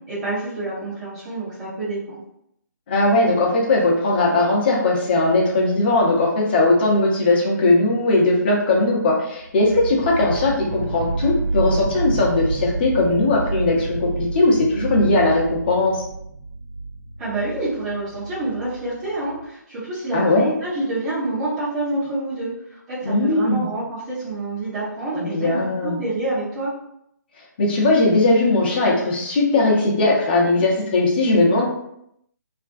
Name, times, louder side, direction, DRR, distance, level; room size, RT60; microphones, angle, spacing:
voice 1, 0.1-2.2 17.2-26.7, right 2 dB, 25° right, -12 dB, 0.9 m, -27 dB
voice 2, 2.9-16.0 20.1-20.5 23.0-23.7 25.1-26.0 27.6-31.7, left 2 dB, 30° left, -3 dB, 0.7 m, -19 dB
sound 1, 9.5-19.4, right 3 dB, 55° right, 0.9 m, -29 dB
2.5 x 2.1 x 2.5 m, 0.75 s
figure-of-eight pair, 140°, 10 cm